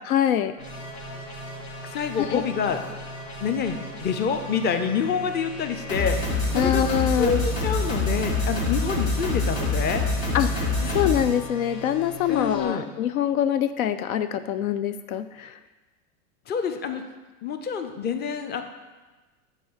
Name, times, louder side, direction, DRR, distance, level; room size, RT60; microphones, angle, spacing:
voice 1, 0.1-0.5 2.2-2.4 6.6-7.4 10.3-10.7 10.9-15.5, left 10 dB, 75° left, 12 dB, 0.5 m, -24 dB
sound 1, 0.6-12.6, left 2 dB, 50° left, 2.5 m, -29 dB
voice 2, 1.8-2.8 3.4-6.8 7.1-10.4 10.8-11.1 12.3-12.9 16.5-17.0 17.4-18.6, left 6 dB, 25° left, 7 dB, 0.6 m, -27 dB
8.4 x 3.3 x 6.2 m, 1.2 s
hypercardioid pair, 95°, 44 cm